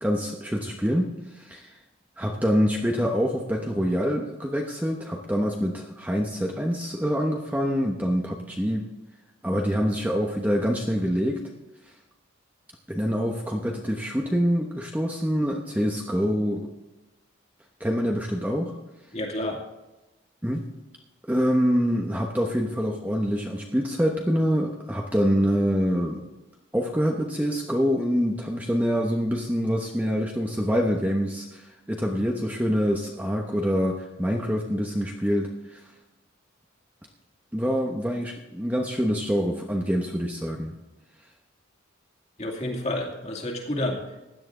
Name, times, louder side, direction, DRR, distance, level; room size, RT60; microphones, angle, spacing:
voice 1, 0.0-1.7 2.2-8.9 9.4-11.4 12.9-16.7 17.8-18.7 20.4-20.6 21.3-26.2 26.7-35.8 37.5-40.7, equal, 10° right, 1 dB, 1.0 m, -25 dB
voice 2, 19.1-19.6 42.4-44.2, left 1 dB, 35° left, 1 dB, 2.4 m, -30 dB
16.0 x 10.5 x 3.8 m, 1.0 s
head